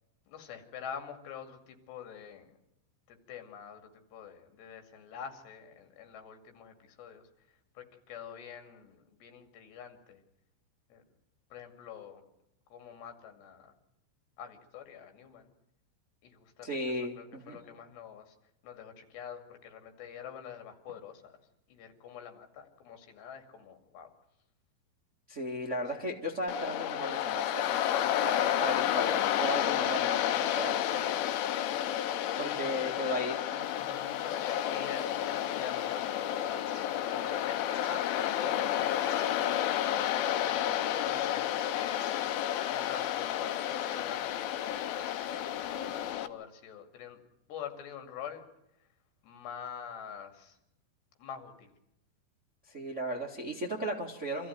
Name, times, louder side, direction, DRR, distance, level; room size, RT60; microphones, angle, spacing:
voice 1, 0.3-2.6 3.1-10.2 10.9-11.0 11.5-12.2 12.7-13.7 14.4-15.5 16.2-18.4 18.6-21.4 21.7-24.1 25.9-26.1 32.1-33.2 33.7-39.5 40.4-42.3 42.7-47.2 47.5-48.5 48.8-48.9 49.2-50.6 51.2-51.7, left 8 dB, 70° left, 6 dB, 4.5 m, -46 dB
voice 2, 16.6-17.6 25.3-31.2 32.4-33.7 52.7-54.5, equal, 70° right, -1 dB, 0.6 m, -36 dB
Waves surf, 26.5-46.3, left 11 dB, 90° left, 3.4 m, -31 dB
sound 1, 33.6-46.1, right 1 dB, 35° right, 7.5 m, -54 dB
26.0 x 14.5 x 9.3 m, 0.82 s
omnidirectional pair, 5.3 m